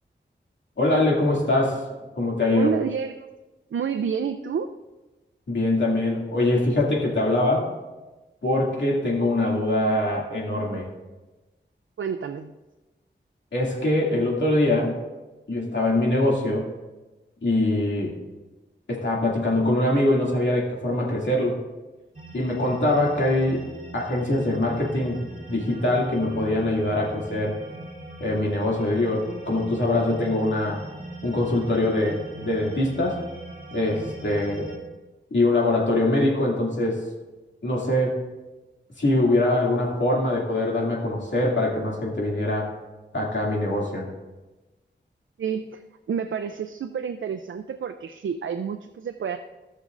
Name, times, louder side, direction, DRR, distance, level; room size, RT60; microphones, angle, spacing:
voice 1, 0.8-1.9 2.2-2.7 5.5-7.7 8.4-10.9 13.5-15.0 15.5-16.7 17.4-18.1 18.9-21.6 22.3-23.6 23.9-25.2 25.5-27.6 28.2-30.8 31.2-33.2 33.7-34.7 35.3-37.0 37.6-38.2 39.0-42.7 43.1-44.1, left 1 dB, 70° left, -3 dB, 2.4 m, -23 dB
voice 2, 2.5-3.3 3.7-4.7 12.0-12.5 45.4-45.8 46.1-49.4, right 7 dB, 85° right, 7 dB, 0.4 m, -29 dB
sound 1, 22.1-34.8, right 1 dB, 30° right, 3.2 m, -40 dB
17.0 x 6.6 x 2.5 m, 1.1 s
wide cardioid pair, 80°, 20 cm